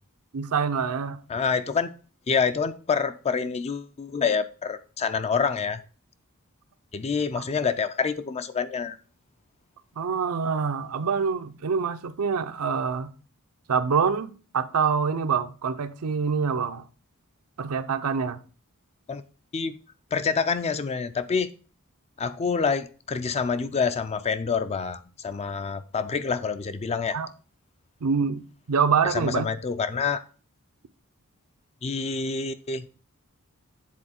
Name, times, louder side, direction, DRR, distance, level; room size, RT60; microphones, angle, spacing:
voice 1, 0.3-1.2 7.4-7.5 10.0-13.1 13.7-16.8 17.6-18.4 27.1-27.3 28.0-29.5, right 6 dB, 80° right, 0.5 m, -26 dB
voice 2, 1.3-1.9 2.3-5.8 6.9-9.0 19.1-19.2 19.5-19.8 20.1-21.5 22.2-27.2 29.0-30.2 31.8-32.9, left 5 dB, 30° left, 0.4 m, -27 dB
7.5 x 3.9 x 4.3 m
head